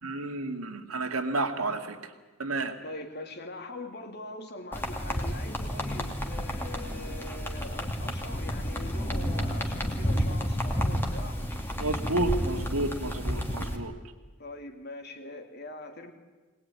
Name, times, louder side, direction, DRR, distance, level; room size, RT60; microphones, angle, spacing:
voice 1, 0.0-2.1 2.4-2.7 11.8-13.9, right 2 dB, 90° right, 5 dB, 2.3 m, -31 dB
voice 2, 2.8-11.4 14.4-16.1, left 2 dB, 50° left, 5 dB, 2.7 m, -42 dB
sound 1, 4.7-13.8, equal, 10° left, 2.5 m, -31 dB
22.5 x 19.5 x 9.7 m, 1.3 s
head